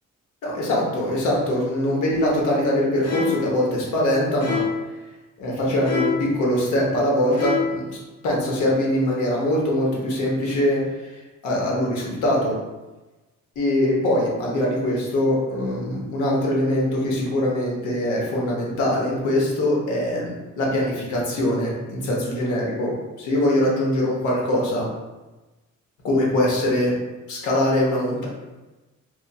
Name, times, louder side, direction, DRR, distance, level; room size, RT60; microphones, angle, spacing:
voice 1, 0.4-4.6 5.4-8.0 8.2-12.6 13.6-24.9 26.0-26.9 27.3-28.3, left 1 dB, 90° left, -4 dB, 0.9 m, -22 dB
sound 1, 3.0-3.5 4.4-4.9 5.8-6.3 7.3-7.8, left 6 dB, 55° left, 0.6 m, -26 dB
2.9 x 2.4 x 2.3 m, 1.1 s
cardioid pair, 90°, 30 cm